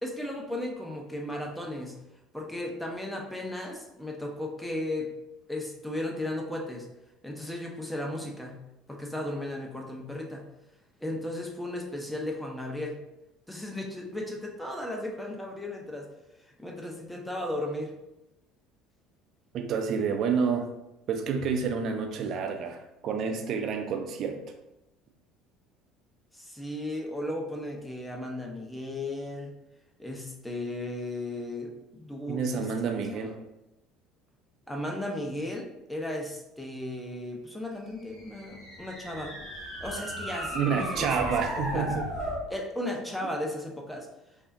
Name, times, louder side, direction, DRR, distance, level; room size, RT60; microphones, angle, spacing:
voice 1, 0.0-2.0 2.3-5.1 5.5-6.9 7.2-8.6 8.9-10.5 11.0-13.0 13.5-16.1 16.6-17.9 26.3-29.5 30.0-33.3 34.7-39.3 39.8-41.9 42.5-44.1, left 1 dB, 5° left, 1 dB, 0.7 m, -35 dB
voice 2, 19.5-20.7 21.1-24.4 32.3-33.3 40.5-42.0, right 6 dB, 45° right, 4 dB, 0.5 m, -29 dB
sound 1, 38.1-42.5, equal, 45° left, 1.2 m, -35 dB
5.3 x 2.1 x 2.6 m, 0.92 s
figure-of-eight pair, 60°, 0 cm